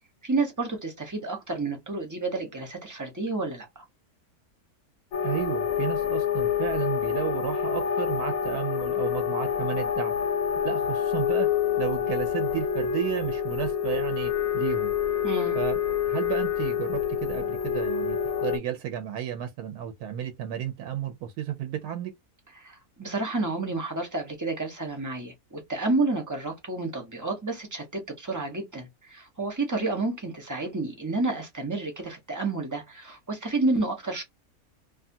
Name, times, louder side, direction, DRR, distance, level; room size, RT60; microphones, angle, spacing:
voice 1, 0.2-3.8 15.2-15.6 22.5-34.2, right 3 dB, 20° right, 0.6 m, -30 dB
sound 1, 5.1-18.6, left 8 dB, 70° left, 0.9 m, -27 dB
voice 2, 5.2-10.1 10.6-11.5 11.8-14.9 15.5-15.8 16.1-22.1, right 10 dB, 90° right, 1.1 m, -32 dB
2.7 x 2.3 x 2.6 m
omnidirectional pair, 1.6 m